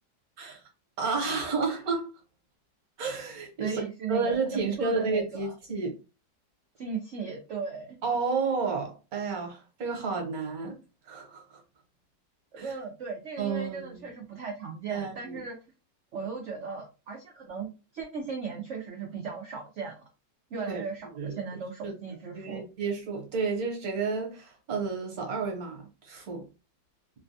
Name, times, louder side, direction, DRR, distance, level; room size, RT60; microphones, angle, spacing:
voice 1, 1.0-2.2 3.0-3.8 4.1-5.9 8.0-10.8 11.0-11.6 12.6-12.7 13.4-14.1 14.9-15.4 20.7-20.8 21.1-21.4 21.8-26.4, right 4 dB, 60° right, 1.3 m, -31 dB
voice 2, 3.6-5.5 6.8-8.0 12.5-15.6 16.1-17.7 17.9-20.0 20.5-22.6, right 5 dB, 85° right, 0.6 m, -37 dB
3.2 x 2.2 x 2.6 m
omnidirectional pair, 2.0 m